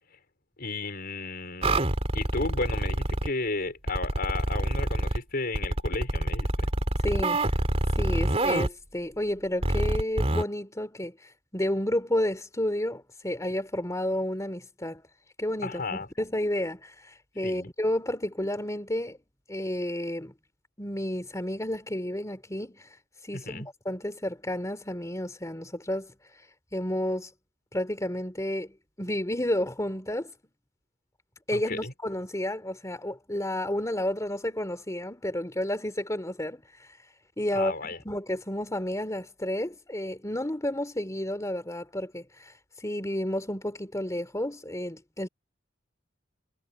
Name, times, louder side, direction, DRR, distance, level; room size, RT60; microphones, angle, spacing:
voice 1, 0.6-1.8 2.1-6.7 15.6-16.1 17.4-17.7 23.3-23.7 31.5-31.9 37.5-38.0, left 3 dB, 55° left, 5.2 m, -33 dB
sound 1, 1.6-3.3 3.9-5.2 5.5-8.7 9.6-10.4, right 1 dB, 35° right, 3.3 m, -26 dB
voice 2, 7.0-7.4 7.9-15.0 15.4-19.2 19.5-20.3 20.8-23.0 23.2-26.1 26.7-27.3 27.7-30.3 31.5-36.9 37.4-45.3, left 1 dB, 15° left, 3.3 m, -31 dB
head